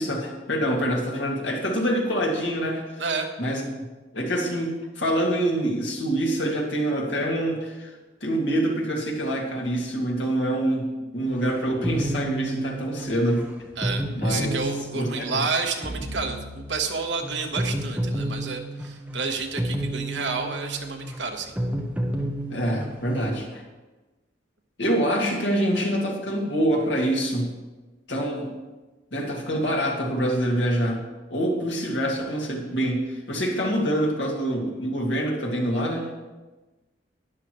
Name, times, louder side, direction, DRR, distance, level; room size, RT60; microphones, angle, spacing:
voice 1, 0.0-2.8 3.4-3.6 4.1-7.9 8.2-13.5 14.1-14.5 14.9-15.4 22.5-23.6 24.8-27.5 28.1-28.5 29.1-31.0 31.3-36.1, right 1 dB, 75° left, -2 dB, 2.3 m, -25 dB
sound 1, 11.2-23.4, right 1 dB, 10° right, 0.9 m, -31 dB
voice 2, 13.8-21.5, right 4 dB, 70° right, 3 dB, 1.2 m, -30 dB
12.0 x 10.0 x 3.1 m, 1.2 s
head